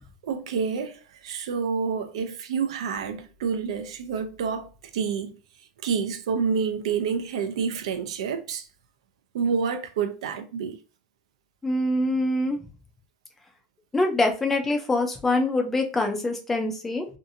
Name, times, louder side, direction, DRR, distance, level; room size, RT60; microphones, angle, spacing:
voice 1, 0.2-5.4 5.8-8.7 9.3-10.8, right 6 dB, 80° right, 0.5 m, -28 dB
voice 2, 11.6-12.6 13.9-17.1, left 2 dB, 5° left, 0.4 m, -24 dB
2.7 x 2.4 x 2.6 m
supercardioid pair, 180°, 3 cm